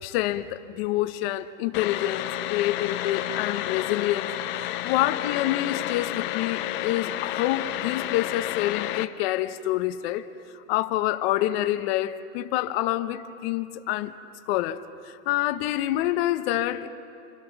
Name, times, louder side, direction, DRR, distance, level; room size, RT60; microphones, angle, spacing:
voice 1, 0.0-4.3 4.6-10.3 10.5-14.1 14.5-16.9, left 14 dB, 50° left, 1.1 m, -27 dB
sound 1, 1.7-9.0, left 13 dB, 30° left, 0.7 m, -31 dB
29.5 x 26.5 x 6.0 m
supercardioid pair, 155°, 40 cm